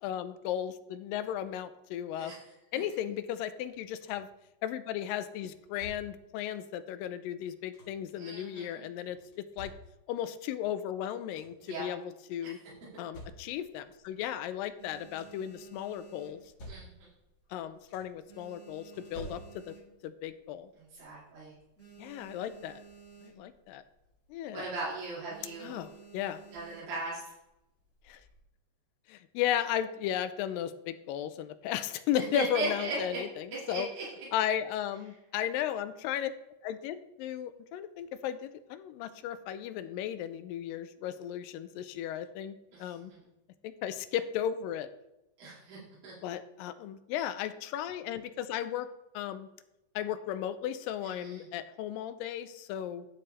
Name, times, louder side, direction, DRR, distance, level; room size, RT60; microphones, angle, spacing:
voice 1, 0.0-2.3 2.7-4.3 4.6-9.7 10.1-12.6 13.0-16.4 17.5-19.8 20.0-20.7 22.0-22.8 23.2-23.8 24.3-24.7 25.6-26.4 28.1-28.2 29.1-33.9 34.3-36.3 36.6-43.1 43.6-44.9 46.2-48.9 49.1-49.5 50.0-53.1, left 10 dB, 80° left, 12 dB, 2.2 m, -35 dB
sound 1, 3.6-4.4 5.4-6.4 7.3-8.2 9.1-10.3 10.8-10.9 11.1-11.7 12.7-13.8 14.8-15.5 16.2-17.3 17.5-18.3 18.9-19.9 21.2-21.3 21.8-22.0, equal, 45° left, 3.4 m, -51 dB
voice 2, 8.2-8.8 11.6-11.8 12.4-12.5 16.7-17.1 20.7-21.5 24.5-25.8 26.5-27.3 32.1-33.2 33.5-34.3 42.7-43.2 45.4-46.1 51.0-51.5, right 2 dB, 85° right, -8 dB, 4.3 m, -38 dB
sound 2, 13.5-14.2 14.6-17.1 17.4-17.7 18.0-20.3 20.7-20.8 21.0-21.1 21.5-23.7 24.0-24.2 24.6-24.8 25.3-27.1 27.8-28.4, right 6 dB, 5° left, 1.7 m, -54 dB
10.5 x 7.6 x 3.3 m, 0.88 s
omnidirectional pair, 4.0 m